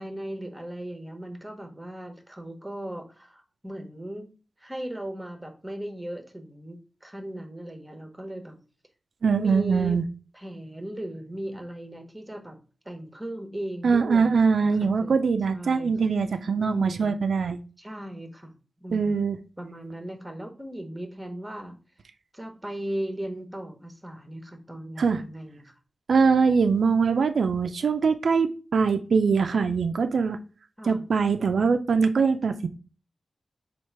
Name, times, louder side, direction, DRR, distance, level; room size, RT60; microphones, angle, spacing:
voice 1, 0.0-4.3 4.6-8.6 9.4-10.0 10.3-12.6 12.8-15.2 15.5-15.9 16.6-17.1 17.8-18.5 18.8-19.3 19.6-21.8 22.3-25.7 30.8-31.0, right 1 dB, 10° right, 0.8 m, -37 dB
voice 2, 9.2-10.0 13.8-17.6 18.9-19.4 25.0-25.2 26.1-30.4 30.9-32.7, right 5 dB, 75° right, 0.3 m, -22 dB
4.5 x 2.4 x 4.4 m
wide cardioid pair, 135°, 0 cm